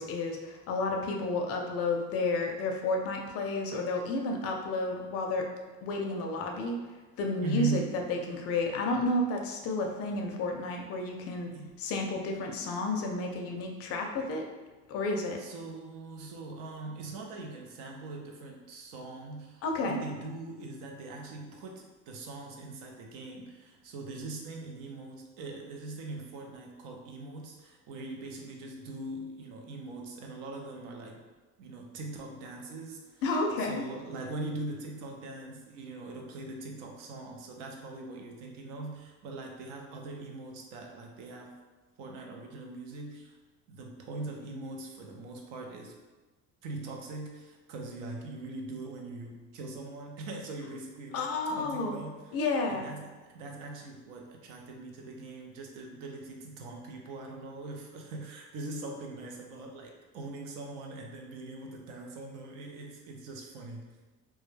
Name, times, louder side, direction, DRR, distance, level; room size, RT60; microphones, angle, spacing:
voice 1, 0.0-5.5 5.8-6.8 7.2-11.5 11.8-14.4 14.9-15.4 19.6-20.0 33.2-33.8 51.1-52.0 52.3-52.8, left 2 dB, 50° left, 2 dB, 0.4 m, -31 dB
voice 2, 7.4-7.9 11.5-11.8 15.4-31.2 31.6-33.2 33.6-41.6 42.0-43.4 43.7-45.9 46.6-52.4 52.7-64.0, right 2 dB, 75° right, 1 dB, 0.6 m, -41 dB
2.2 x 2.1 x 3.1 m, 1.2 s
cardioid pair, 140°, 32 cm